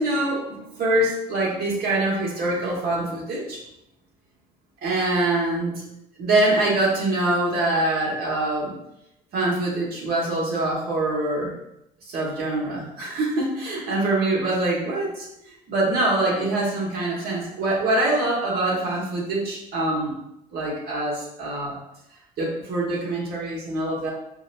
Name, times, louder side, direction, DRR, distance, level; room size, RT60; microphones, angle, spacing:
voice 1, 0.0-3.6 4.8-5.8 6.2-8.7 9.3-11.5 12.1-15.3 15.7-20.1 20.5-21.8 22.4-24.1, right 2 dB, 65° right, -4 dB, 1.4 m, -24 dB
5.0 x 2.2 x 2.6 m, 0.84 s
cardioid pair, 110°, 17 cm